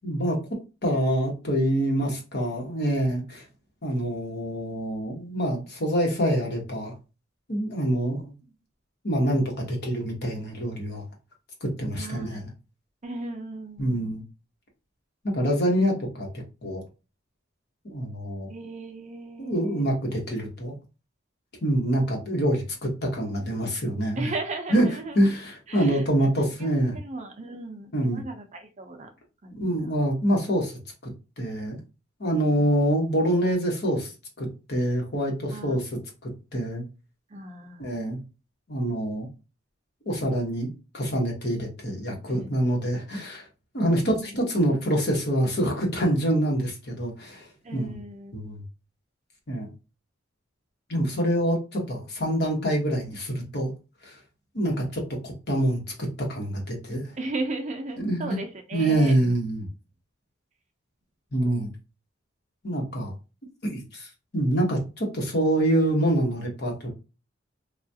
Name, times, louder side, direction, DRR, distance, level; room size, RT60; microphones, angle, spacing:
voice 1, 0.0-0.4 0.8-3.5 3.8-6.9 7.5-8.3 9.0-11.0 11.6-12.4 13.8-14.2 15.2-16.3 16.6-16.8 17.8-18.5 19.4-20.7 21.6-24.3 24.7-24.8 25.1-27.0 27.9-28.2 29.6-30.7 31.0-31.8 32.2-34.1 34.4-35.9 36.2-36.8 37.8-38.2 38.7-39.3 40.1-40.7 40.9-43.5 43.7-48.0 48.3-48.6 49.5-49.7 50.9-53.7 54.0-54.2 54.5-57.1 58.0-58.4 58.7-59.7 61.3-61.7 62.6-63.1 63.6-66.9, right 1 dB, 55° left, 1 dB, 1.0 m, -26 dB
voice 2, 12.0-12.4 13.0-14.2 18.5-19.9 24.2-25.2 25.7-29.1 29.4-29.9 35.5-35.8 37.3-38.0 42.3-42.5 43.8-44.3 47.6-48.3 54.5-54.7 57.2-59.3, right 2 dB, 35° right, 5 dB, 0.5 m, -37 dB
3.3 x 2.4 x 2.7 m, 0.30 s
head